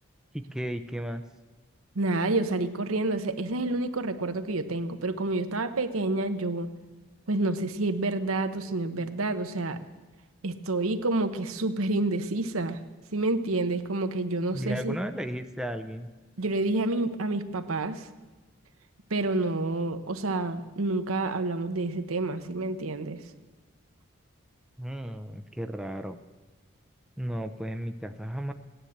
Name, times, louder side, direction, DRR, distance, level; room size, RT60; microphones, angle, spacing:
voice 1, 0.3-1.2 14.5-16.1 24.8-26.2 27.2-28.5, equal, 5° right, 7 dB, 0.5 m, -34 dB
voice 2, 1.9-6.7 7.3-9.8 10.4-12.8 13.1-15.0 16.4-18.1 19.1-23.2, right 2 dB, 90° right, 9 dB, 1.0 m, -28 dB
16.0 x 10.0 x 7.9 m, 1.2 s
head